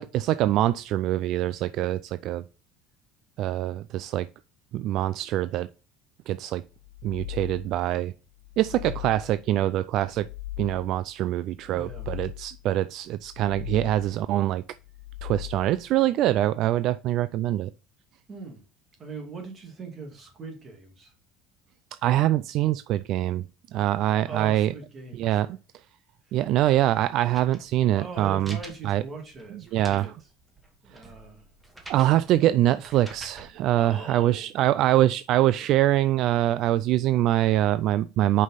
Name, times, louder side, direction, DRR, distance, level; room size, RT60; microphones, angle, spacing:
voice 1, 0.0-2.4 3.4-4.3 4.7-5.7 6.3-6.6 7.0-8.1 8.6-10.3 10.6-14.6 15.2-17.7 21.9-23.4 23.7-24.7 25.2-25.5 26.3-28.6 28.8-29.0 29.7-30.1 31.9-38.4, right 13 dB, 55° right, 0.3 m, -24 dB
sound 1, 6.8-7.9 8.4-9.5 10.0-11.0 11.6-12.7 13.1-14.2 14.8-15.9, left 16 dB, 90° left, 1.1 m, -39 dB
voice 2, 11.7-12.1 18.3-18.6 19.0-21.1 24.3-25.5 26.3-26.4 27.9-30.2 30.8-31.5 33.7-34.5 35.6-35.7, right 4 dB, 25° right, 2.3 m, -41 dB
sound 2, 27.3-33.5, right 1 dB, 10° right, 1.3 m, -48 dB
6.4 x 5.5 x 4.1 m
cardioid pair, 150°, 0 cm